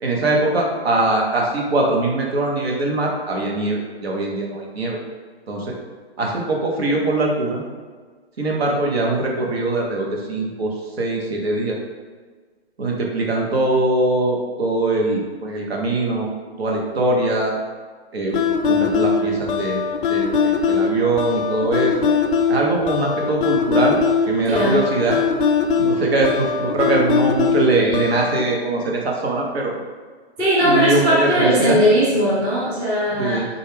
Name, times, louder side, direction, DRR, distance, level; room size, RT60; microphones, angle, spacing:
voice 1, 0.0-5.0 5.5-5.7 6.2-7.6 8.4-10.7 11.0-11.8 12.8-16.3 16.6-17.5 18.1-18.4 18.7-19.8 20.1-21.9 22.5-24.0 24.3-25.2 25.8-29.7 30.6-31.8 33.2-33.5, right 2 dB, 70° right, -1 dB, 1.0 m, -21 dB
sound 1, 18.3-28.4, left 5 dB, 50° left, 0.4 m, -21 dB
voice 2, 30.4-33.5, equal, 10° right, -8 dB, 0.5 m, -18 dB
4.0 x 2.4 x 3.4 m, 1.5 s
hypercardioid pair, 140°, 33 cm